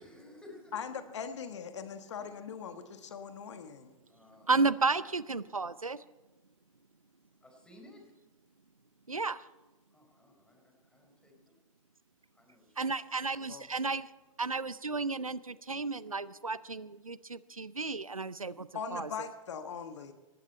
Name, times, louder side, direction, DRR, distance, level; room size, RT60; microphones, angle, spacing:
voice 1, 0.0-0.7 2.1-2.2 4.1-4.5 7.4-8.0 9.9-11.3 12.4-13.0, left 1 dB, 5° left, 2 dB, 4.2 m, -55 dB
voice 2, 0.7-3.9 13.5-13.7 18.7-20.1, left 6 dB, 60° left, 9 dB, 1.3 m, -40 dB
voice 3, 4.5-6.0 9.1-9.5 12.8-14.1 14.4-19.1, right 3 dB, 90° right, 19 dB, 0.6 m, -33 dB
19.0 x 15.5 x 4.4 m, 1.2 s
figure-of-eight pair, 110°, 17 cm